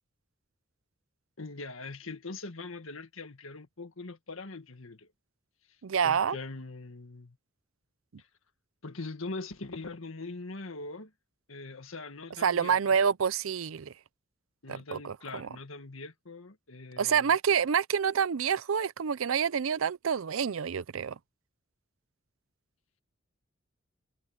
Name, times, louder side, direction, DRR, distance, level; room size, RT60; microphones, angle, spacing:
voice 1, 1.4-5.1 6.0-7.4 8.8-11.1 11.5-13.0 14.6-17.4, left 3 dB, 90° left, 1.8 m, -42 dB
voice 2, 5.8-6.4 12.4-13.9 14.7-15.5 17.0-21.2, right 7 dB, 90° right, 0.5 m, -27 dB
head